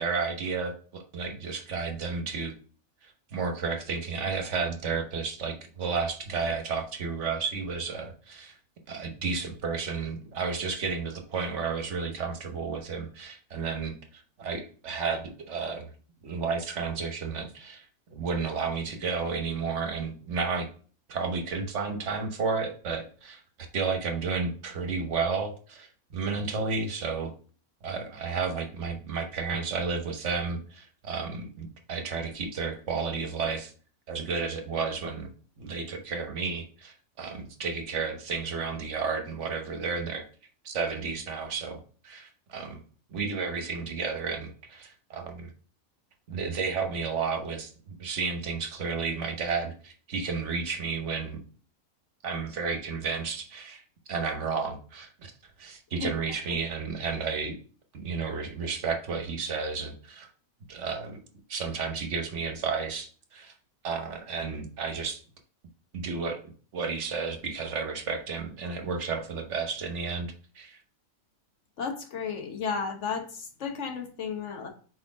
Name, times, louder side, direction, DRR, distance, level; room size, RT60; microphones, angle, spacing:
voice 1, 0.0-2.5 3.0-8.5 8.9-15.9 16.2-20.7 21.1-23.4 23.7-27.3 27.8-33.7 34.1-35.3 35.6-40.3 40.6-42.8 43.1-45.5 46.3-47.7 48.0-51.4 52.2-53.8 54.1-55.3 55.6-57.6 57.9-60.3 60.7-61.2 61.5-63.5 63.8-65.2 65.9-66.4 66.7-70.8, right 5 dB, 60° right, 5 dB, 1.2 m, -32 dB
voice 2, 71.8-74.7, left 6 dB, 60° left, 5 dB, 1.3 m, -33 dB
4.6 x 4.3 x 4.8 m, 0.41 s
omnidirectional pair, 1.5 m